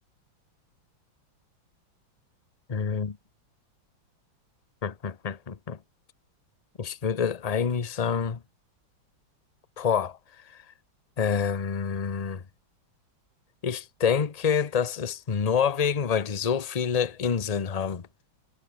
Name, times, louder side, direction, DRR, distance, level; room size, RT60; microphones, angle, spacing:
voice 1, 2.7-3.2 4.8-5.8 6.8-8.4 9.8-10.2 11.2-12.4 13.6-18.0, left 7 dB, 30° left, 0.7 m, -27 dB
omnidirectional pair, 2.1 m